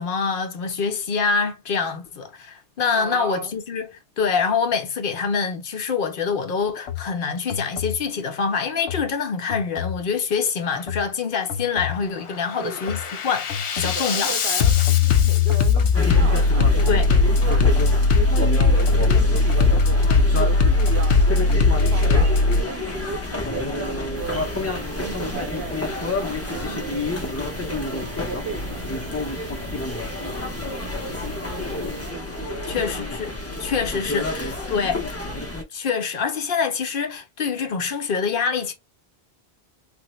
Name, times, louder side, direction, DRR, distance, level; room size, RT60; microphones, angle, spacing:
voice 1, 0.0-3.9 4.2-13.5 13.8-14.3 16.9-17.2 32.7-33.3 33.6-35.2 35.7-38.7, left 5 dB, 60° left, 0.7 m, -25 dB
voice 2, 2.9-3.5 12.6-13.2 13.8-17.6 18.0-24.5 24.9-29.0 32.1-33.1 33.5-33.7, right 6 dB, 70° right, 0.8 m, -36 dB
Bass drum, 6.8-7.0 7.5-8.0 8.8-9.0 9.5-10.0 10.8-11.0 11.5-12.0 12.4-22.6, left 4 dB, 85° left, 0.9 m, -19 dB
sound 1, 15.9-35.6, left 2 dB, 20° left, 0.5 m, -29 dB
sound 2, 24.1-32.1, right 5 dB, 90° right, 1.2 m, -40 dB
3.4 x 2.0 x 3.0 m
omnidirectional pair, 1.1 m